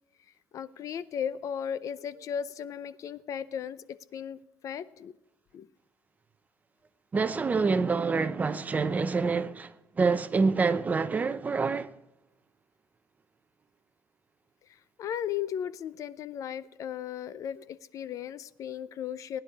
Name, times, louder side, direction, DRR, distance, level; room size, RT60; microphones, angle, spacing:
voice 1, 0.5-3.8 4.1-5.1 5.5-5.7 15.0-19.4, left 8 dB, 50° left, 0.5 m, -36 dB
voice 2, 7.1-11.9, right 4 dB, 20° right, 0.6 m, -27 dB
18.5 x 10.5 x 4.8 m
cardioid pair, 150°, 7 cm